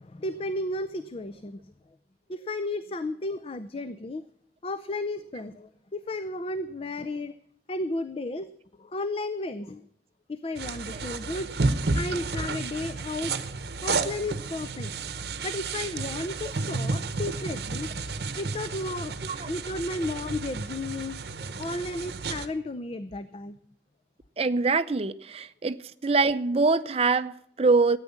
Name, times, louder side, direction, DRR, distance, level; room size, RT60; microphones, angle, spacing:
voice 1, 0.0-1.6 2.3-4.2 4.6-7.3 7.7-8.5 8.8-9.8 10.3-11.5 11.9-13.3 13.8-14.9 15.4-17.9 18.4-21.2 21.6-23.6, left 2 dB, 30° left, 0.5 m, -33 dB
sound 1, 10.6-22.5, right 3 dB, 60° right, 0.9 m, -32 dB
voice 2, 24.4-25.8 26.0-28.0, right 3 dB, 35° right, 0.5 m, -24 dB
13.0 x 9.1 x 7.0 m
head